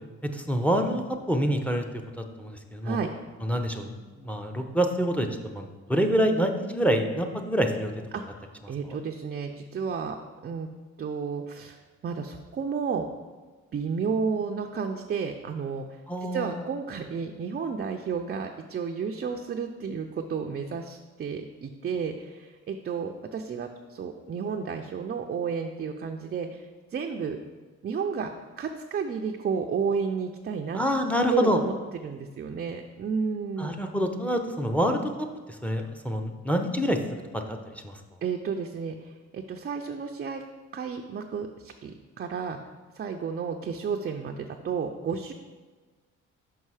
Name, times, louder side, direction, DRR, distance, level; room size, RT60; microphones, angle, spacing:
voice 1, 0.3-1.0 1.3-1.8 2.4-3.0 3.4-3.9 4.2-5.3 5.5-7.9 16.1-16.6 30.7-31.6 33.6-35.3 35.6-38.0, equal, 5° left, 5 dB, 0.7 m, -26 dB
voice 2, 8.1-10.2 10.4-10.7 11.0-11.8 12.0-13.1 13.7-15.9 16.2-27.4 27.8-30.8 31.3-33.8 38.2-40.4 40.7-42.6 42.9-45.3, right 6 dB, 35° right, 3 dB, 0.4 m, -32 dB
5.5 x 5.4 x 4.8 m, 1.4 s
cardioid pair, 90°, 30 cm